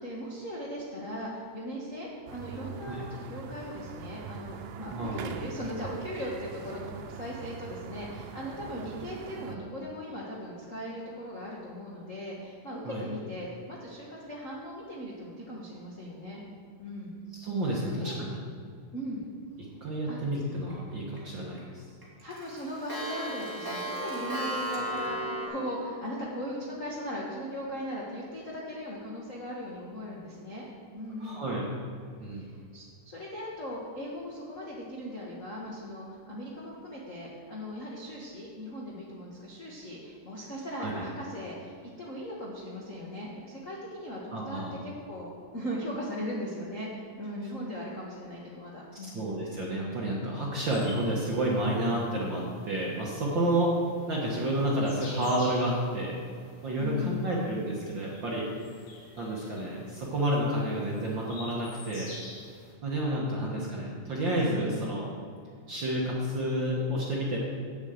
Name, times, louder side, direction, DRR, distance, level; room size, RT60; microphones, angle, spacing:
voice 1, 0.0-16.4 16.8-17.1 17.7-18.3 18.9-19.3 20.1-20.2 22.2-30.6 30.9-31.5 32.3-49.3 56.8-57.3 64.6-64.9, equal, 50° left, -5 dB, 0.9 m, -38 dB
sound 1, 2.3-9.6, right 7 dB, 85° right, 2.2 m, -43 dB
voice 2, 4.9-5.2 9.3-9.6 12.8-13.0 17.3-18.4 19.8-21.8 31.2-31.6 32.2-32.4 40.8-41.0 44.3-44.8 49.0-53.7 54.1-56.1 56.6-58.5 59.2-62.1 62.8-65.1 65.7-67.4, right 1 dB, 50° right, -4 dB, 1.5 m, -30 dB
Clock, 20.7-21.2 21.6-21.7 22.0-25.5, right 1 dB, 10° right, 1.7 m, -34 dB
sound 2, 50.6-62.7, left 2 dB, 90° left, 3.3 m, -50 dB
8.1 x 7.2 x 8.0 m, 2.2 s
omnidirectional pair, 3.7 m